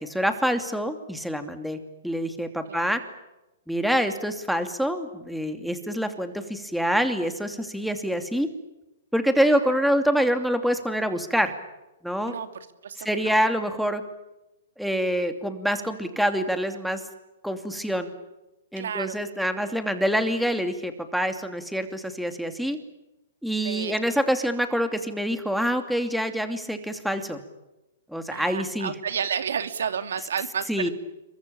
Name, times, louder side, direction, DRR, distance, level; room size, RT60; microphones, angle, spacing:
voice 1, 0.0-1.8 2.0-3.0 3.7-8.5 9.1-11.5 12.0-12.3 13.0-14.0 14.8-17.0 17.4-18.1 18.7-22.8 23.4-27.4 28.1-28.9 30.7-30.9, equal, ahead, 7 dB, 2.8 m, -26 dB
voice 2, 9.5-9.8 12.3-13.3 18.8-19.2 23.6-23.9 28.3-30.9, right 7 dB, 75° right, 9 dB, 2.6 m, -31 dB
27.0 x 23.5 x 8.8 m, 0.96 s
hypercardioid pair, 135°, 0 cm